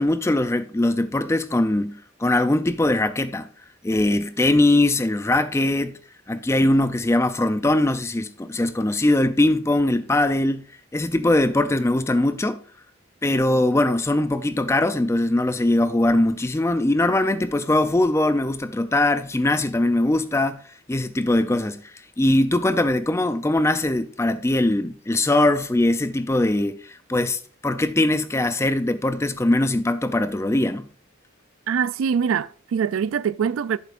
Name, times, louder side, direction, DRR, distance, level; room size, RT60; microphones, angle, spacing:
voice 1, 0.0-3.5 3.8-6.0 6.3-10.7 10.9-12.6 13.2-20.6 20.9-21.8 22.2-30.9, left 1 dB, 15° left, 0.4 m, -21 dB
voice 2, 31.7-33.8, right 7 dB, 90° right, 0.3 m, -23 dB
11.5 x 7.2 x 2.5 m
head